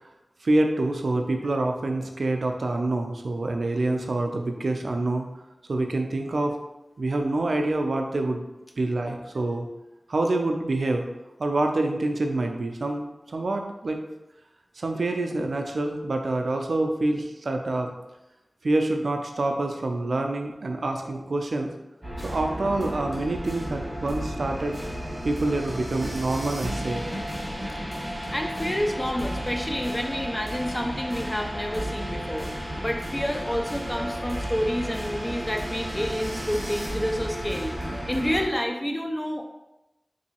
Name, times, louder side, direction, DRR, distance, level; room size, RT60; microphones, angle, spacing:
voice 1, 0.4-5.3 5.7-6.6 7.0-8.4 8.8-9.7 10.1-11.0 11.4-14.0 14.8-17.9 18.6-21.7 22.2-24.8 25.2-27.0, right 2 dB, 85° right, 3 dB, 0.3 m, -26 dB
sound 1, 22.0-38.5, equal, 10° right, 1.3 m, -33 dB
voice 2, 28.3-32.5 32.8-39.5, equal, 20° left, 3 dB, 0.5 m, -29 dB
3.8 x 2.6 x 2.8 m, 0.96 s
wide cardioid pair, 45°, 0 cm